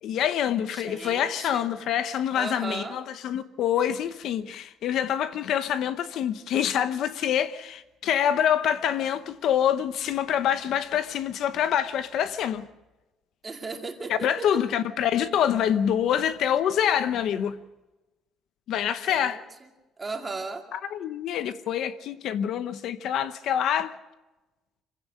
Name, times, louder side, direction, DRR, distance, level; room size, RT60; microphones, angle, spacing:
voice 1, 0.0-12.7 14.1-17.6 18.7-19.4 20.7-23.9, left 9 dB, 55° left, 0.8 m, -26 dB
voice 2, 0.7-1.7 2.3-3.0 13.4-14.6 19.0-19.7 20.0-20.7, right 3 dB, 15° right, 2.3 m, -36 dB
26.0 x 16.5 x 6.3 m
cardioid pair, 175°, 0 cm